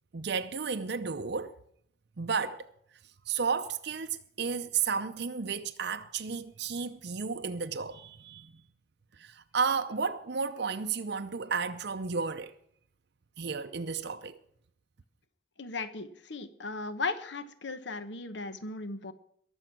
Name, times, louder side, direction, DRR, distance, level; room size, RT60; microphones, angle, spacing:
voice 1, 0.1-1.5 2.2-2.7 3.3-8.5 9.2-12.6 13.4-14.4, right 5 dB, 60° right, 0.6 m, -33 dB
voice 2, 15.6-19.1, left 3 dB, 65° left, 1.0 m, -36 dB
21.5 x 7.2 x 5.9 m
head